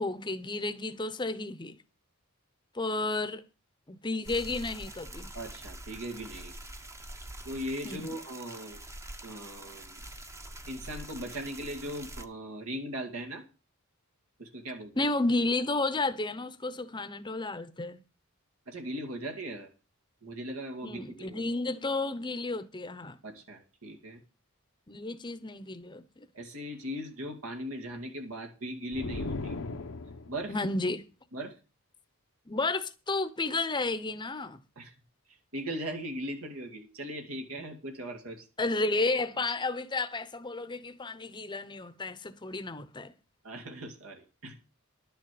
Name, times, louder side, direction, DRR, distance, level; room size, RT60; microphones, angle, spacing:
voice 1, 0.0-1.8 2.7-3.4 3.9-5.3 7.8-8.1 15.0-18.0 20.8-23.2 24.9-26.0 30.5-31.0 32.5-34.6 38.6-43.1, left 2 dB, 20° left, 0.9 m, -32 dB
sound 1, 4.2-12.2, right 1 dB, 15° right, 0.9 m, -45 dB
voice 2, 5.3-6.6 7.5-8.8 9.2-10.0 10.7-13.4 14.4-15.1 18.7-19.7 20.2-21.4 23.2-24.2 26.3-29.5 30.3-30.5 31.3-31.5 34.8-34.9 35.3-38.5 43.4-44.7, equal, 75° right, 2.2 m, -39 dB
sound 2, 28.9-30.6, left 3 dB, 70° left, 0.9 m, -37 dB
11.5 x 6.8 x 7.6 m
head